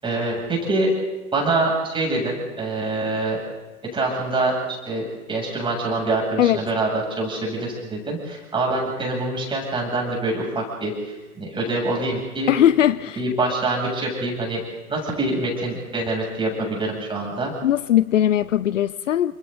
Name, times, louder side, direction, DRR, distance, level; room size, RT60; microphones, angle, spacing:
voice 1, 0.0-0.9 1.3-3.4 3.9-12.5 13.2-14.6 14.9-17.5, right 2 dB, 10° right, -1 dB, 7.9 m, -25 dB
voice 2, 12.5-13.2 17.6-19.3, left 11 dB, 60° left, 18 dB, 0.7 m, -19 dB
30.0 x 26.5 x 4.0 m, 1.2 s
figure-of-eight pair, 110°, 43 cm